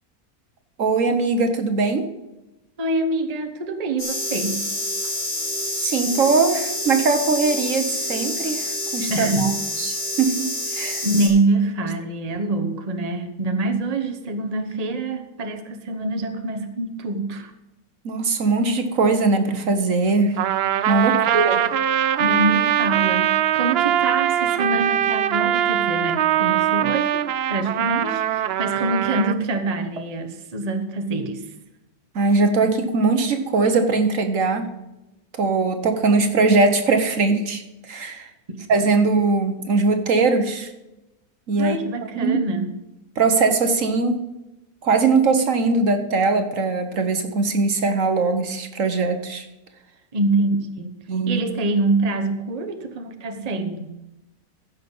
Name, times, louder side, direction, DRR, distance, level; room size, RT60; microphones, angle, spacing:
voice 1, 0.8-2.1 5.8-9.5 9.8-10.5 10.7-11.1 18.0-20.4 20.9-21.7 32.1-34.7 35.3-38.3 38.7-40.7 41.5-41.8 42.2-42.4 43.2-44.2 44.8-49.5 51.1-51.4, right 3 dB, 60° right, 7 dB, 1.4 m, -20 dB
voice 2, 2.8-4.6 9.1-9.5 10.7-17.5 21.1-21.3 22.2-31.5 38.5-38.6 41.6-42.7 50.1-50.9 51.3-53.9, right 2 dB, 30° right, 6 dB, 1.1 m, -25 dB
sound 1, 4.0-11.3, left 1 dB, 35° left, 3.6 m, -28 dB
Trumpet, 20.4-29.4, right 11 dB, 90° right, 0.5 m, -21 dB
15.0 x 6.3 x 5.4 m, 0.96 s
omnidirectional pair, 1.6 m